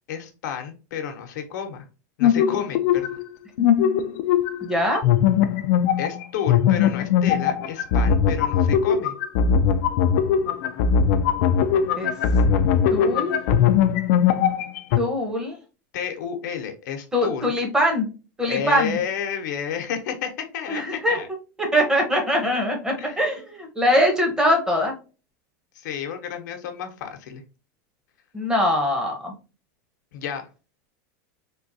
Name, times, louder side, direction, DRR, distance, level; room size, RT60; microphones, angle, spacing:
voice 1, 0.1-1.9 2.2-3.2 6.0-9.1 15.9-17.6 18.5-21.3 23.0-23.3 25.7-27.4 30.1-30.5, left 8 dB, 75° left, 5 dB, 0.8 m, -31 dB
sound 1, 2.2-3.3 3.6-4.7 5.0-15.0, left 8 dB, 55° left, 0.3 m, -20 dB
voice 2, 4.6-5.0 12.0-12.1 12.9-13.4 14.9-15.6 17.1-18.1 18.4-18.9 20.7-24.9 28.3-29.3, equal, 5° right, 2 dB, 0.8 m, -22 dB
3.6 x 2.3 x 2.6 m, 0.33 s
supercardioid pair, 150°, 10 cm